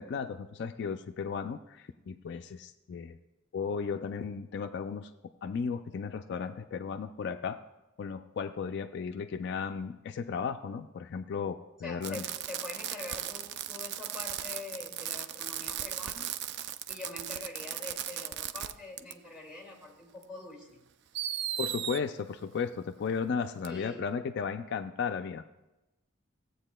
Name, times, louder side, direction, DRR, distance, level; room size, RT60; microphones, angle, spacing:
voice 1, 0.0-3.2 3.5-5.1 5.4-7.6 8.0-12.2 21.6-25.4, left 6 dB, 55° left, 8 dB, 0.3 m, -35 dB
voice 2, 11.8-16.3 16.9-20.8 23.7-24.0, left 2 dB, 5° right, 0 dB, 2.0 m, -44 dB
Fireworks, 12.0-18.7 19.0-19.1 20.2-20.3 21.1-22.0 23.6-23.7, right 11 dB, 55° right, 0.3 m, -37 dB
16.0 x 8.0 x 2.2 m, 1.0 s
head